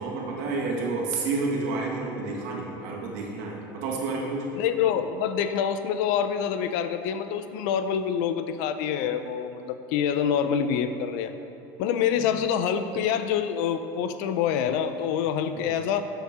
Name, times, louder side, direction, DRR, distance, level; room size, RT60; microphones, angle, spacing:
voice 1, 0.0-4.4 15.5-15.7, right 3 dB, 70° right, -2 dB, 1.9 m, -30 dB
voice 2, 4.6-11.3 11.8-16.0, left 8 dB, 70° left, 10 dB, 0.6 m, -26 dB
12.5 x 7.2 x 3.6 m, 2.7 s
cardioid pair, 160°, 10 cm